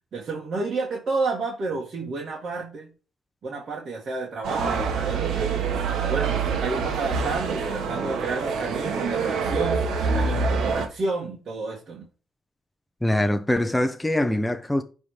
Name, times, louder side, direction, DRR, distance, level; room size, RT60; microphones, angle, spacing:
voice 1, 0.1-2.9 3.4-5.7 6.0-12.1, right 3 dB, 50° right, 2.1 m, -31 dB
sound 1, 4.4-10.9, right 5 dB, 75° right, 1.4 m, -26 dB
voice 2, 13.0-14.8, left 1 dB, 5° left, 0.7 m, -23 dB
9.9 x 3.6 x 5.0 m
cardioid pair, 90°, 0 cm